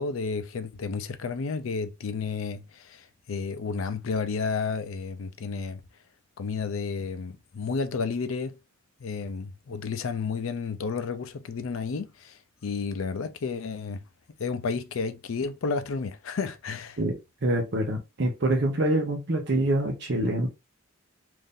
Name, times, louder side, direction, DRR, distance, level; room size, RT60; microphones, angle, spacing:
voice 1, 0.0-5.8 6.4-8.6 9.0-14.0 14.4-17.0, left 5 dB, 85° left, 0.5 m, -31 dB
voice 2, 17.0-20.5, right 1 dB, 60° right, 0.8 m, -26 dB
2.6 x 2.6 x 3.6 m
head